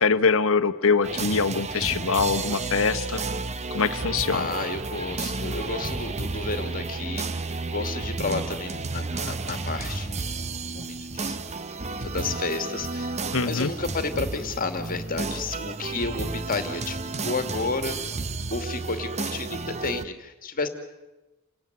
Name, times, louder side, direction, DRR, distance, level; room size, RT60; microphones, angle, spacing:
voice 1, 0.0-3.2 3.7-4.5 13.3-13.7, left 5 dB, 65° left, 12 dB, 1.1 m, -23 dB
sound 1, 1.0-20.1, right 3 dB, 30° right, 0.9 m, -32 dB
voice 2, 4.3-11.6 11.9-18.0 18.5-20.7, left 3 dB, 40° left, 8 dB, 2.4 m, -32 dB
29.0 x 18.0 x 9.5 m, 1.0 s
head